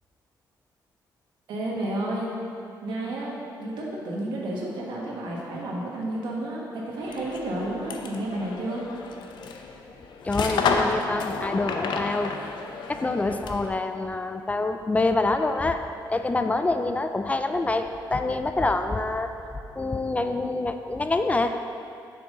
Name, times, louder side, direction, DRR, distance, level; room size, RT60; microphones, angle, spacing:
voice 1, 1.5-2.3 2.8-3.3 3.6-8.9, right 1 dB, 85° right, -3 dB, 1.4 m, -31 dB
sound 1, 7.0-13.8, left 4 dB, 80° left, 0.5 m, -31 dB
voice 2, 10.2-12.3 12.9-19.3 19.8-21.6, left 2 dB, 20° left, 7 dB, 0.3 m, -26 dB
6.8 x 6.0 x 3.8 m, 2.5 s
cardioid pair, 110°, 8 cm